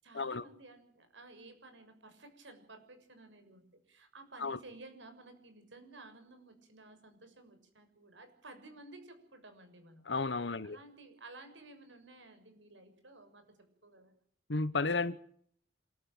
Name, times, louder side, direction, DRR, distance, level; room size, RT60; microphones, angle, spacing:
voice 1, 0.0-10.1 10.6-13.6 13.8-14.1, right 2 dB, 85° right, 6.9 m, -54 dB
voice 2, 10.1-10.8 14.5-15.2, left 3 dB, 70° left, 1.2 m, -33 dB
28.0 x 13.0 x 9.0 m
head